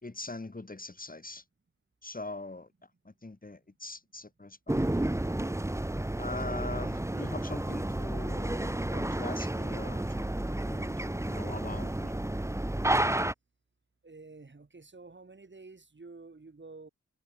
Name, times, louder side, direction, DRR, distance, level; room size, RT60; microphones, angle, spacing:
voice 1, 0.0-1.4 2.0-2.7 3.0-4.8 6.2-12.2, left 2 dB, 30° left, 3.7 m, -42 dB
sound 1, 4.7-13.3, right 1 dB, 10° right, 1.0 m, -31 dB
voice 2, 14.0-16.9, right 3 dB, 40° right, 3.8 m, -50 dB
wide cardioid pair, 80°, 29 cm